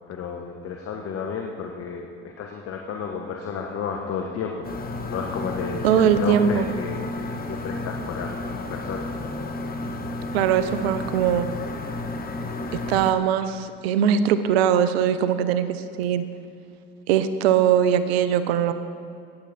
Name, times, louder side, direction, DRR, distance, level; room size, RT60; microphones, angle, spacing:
voice 1, 0.1-2.1 2.4-4.7 5.0-9.1, left 6 dB, 45° left, 2 dB, 1.2 m, -32 dB
sound 1, 4.6-13.1, left 2 dB, 30° left, 1.4 m, -32 dB
voice 2, 5.8-6.7 10.3-11.5 12.9-16.2 17.1-18.7, right 8 dB, 80° right, 12 dB, 0.7 m, -21 dB
17.5 x 8.5 x 4.2 m, 2.5 s
hypercardioid pair, 70°, 31 cm